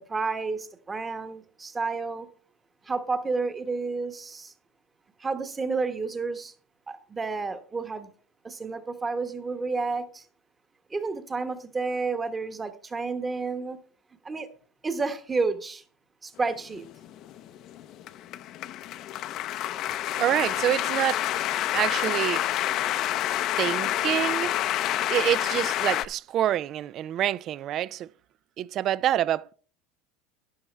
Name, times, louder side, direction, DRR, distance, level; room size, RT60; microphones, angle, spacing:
voice 1, 0.0-2.3 2.8-4.5 5.2-6.5 6.9-8.1 8.4-10.2 10.9-13.8 14.2-14.5 14.8-15.8 16.2-16.9, right 4 dB, 20° right, 1.3 m, -30 dB
sound 1, 16.8-26.1, left 13 dB, 50° left, 0.6 m, -28 dB
voice 2, 20.2-21.2 21.7-22.4 23.6-24.5 25.1-28.1 28.6-29.5, right 12 dB, 45° right, 0.4 m, -26 dB
12.0 x 10.0 x 3.4 m
supercardioid pair, 115°, 0 cm